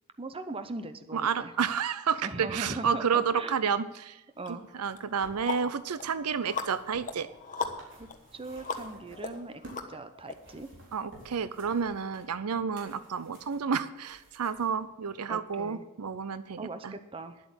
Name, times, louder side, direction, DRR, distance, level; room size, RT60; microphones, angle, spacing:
voice 1, 0.2-1.5 2.2-3.1 3.4-3.5 4.4-4.8 7.9-9.6 9.9-10.7 15.3-15.8 16.6-17.4, right 2 dB, 25° right, 10 dB, 0.8 m, -40 dB
voice 2, 1.1-4.2 4.5-7.3 10.9-17.0, right 6 dB, 85° right, 15 dB, 0.6 m, -30 dB
sound 1, 4.4-4.5 5.0-10.3, left 5 dB, 35° left, 1.2 m, -39 dB
sound 2, 4.7-9.9 10.2-14.8 15.6-15.7, right 1 dB, 60° right, 3.8 m, -54 dB
10.5 x 8.2 x 7.9 m, 0.96 s
head